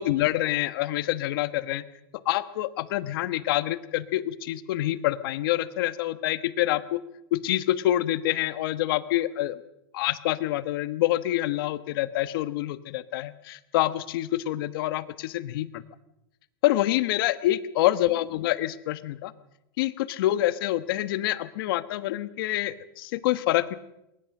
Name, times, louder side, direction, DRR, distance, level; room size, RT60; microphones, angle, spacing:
voice 1, 0.0-1.8 2.2-7.0 7.3-9.6 9.9-15.8 16.6-19.3 19.8-23.8, left 15 dB, 65° left, 14 dB, 1.2 m, -26 dB
21.0 x 19.0 x 6.6 m, 0.90 s
supercardioid pair, 145°, 13 cm